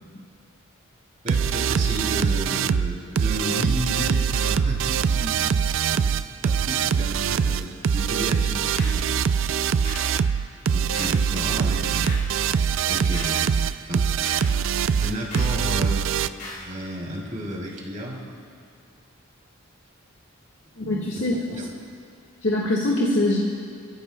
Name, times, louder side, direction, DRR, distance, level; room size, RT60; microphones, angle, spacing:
voice 1, 1.2-5.4 5.9-9.1 10.5-12.3 12.8-14.2 15.0-16.1 16.5-18.2 21.1-21.3 21.5-21.7, equal, 40° right, -2 dB, 2.7 m, -33 dB
sound 1, 1.3-16.3, right 7 dB, 65° right, 0.4 m, -23 dB
sound 2, 8.8-9.1 9.8-10.2 10.9-11.3 12.0-12.4 13.1-13.4 14.2-14.5 15.3-15.6 16.4-16.7, left 2 dB, 45° left, 3.9 m, -38 dB
voice 2, 20.8-21.3 22.4-23.4, left 1 dB, 60° left, -3 dB, 1.6 m, -23 dB
29.5 x 15.5 x 2.2 m, 2.4 s
head